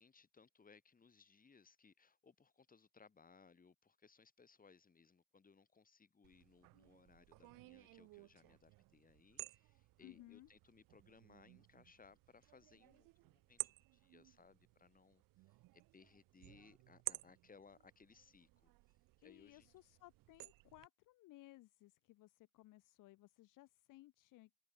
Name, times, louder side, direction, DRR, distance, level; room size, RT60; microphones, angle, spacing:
voice 1, 0.0-19.7, left 5 dB, 25° left, 6.1 m, -66 dB
sound 1, 6.2-20.9, right 20 dB, 85° right, 3.5 m, -54 dB
voice 2, 10.0-10.5 19.2-24.5, left 17 dB, 75° left, 1.4 m, -61 dB
open air
cardioid pair, 115°, 32 cm